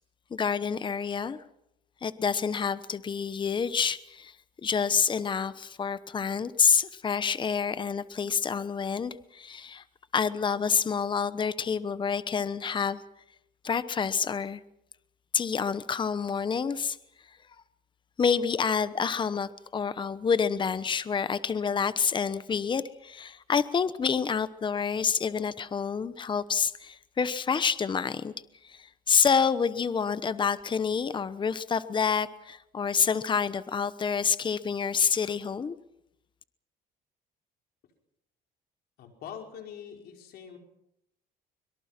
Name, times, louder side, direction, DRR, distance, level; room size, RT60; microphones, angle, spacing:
voice 1, 0.3-1.4 2.0-4.3 4.6-9.8 10.1-13.0 13.6-14.6 15.3-17.0 18.2-28.3 28.6-35.7, left 6 dB, 30° left, 14 dB, 1.0 m, -28 dB
voice 2, 39.0-40.6, left 8 dB, 70° left, 3 dB, 5.3 m, -43 dB
24.5 x 23.0 x 6.0 m, 0.81 s
cardioid pair, 110°, 17 cm